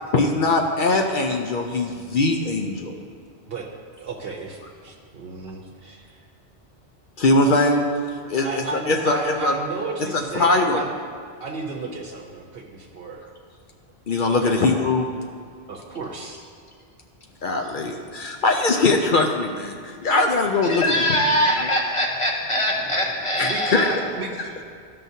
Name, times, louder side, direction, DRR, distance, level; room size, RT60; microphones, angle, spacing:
voice 1, 0.1-2.9 7.2-7.8 8.3-9.5 10.0-10.8 14.1-15.1 17.4-20.9 21.6-21.7 23.4-23.9, left 2 dB, 60° left, 3 dB, 0.7 m, -21 dB
voice 2, 4.0-6.2 8.4-10.9 11.4-13.2 14.4-14.6 15.7-16.4 23.4-24.6, right 3 dB, 65° right, 0 dB, 1.0 m, -33 dB
voice 3, 20.6-24.1, equal, 30° left, -1 dB, 1.0 m, -23 dB
13.0 x 5.6 x 2.7 m, 2.2 s
omnidirectional pair, 1.1 m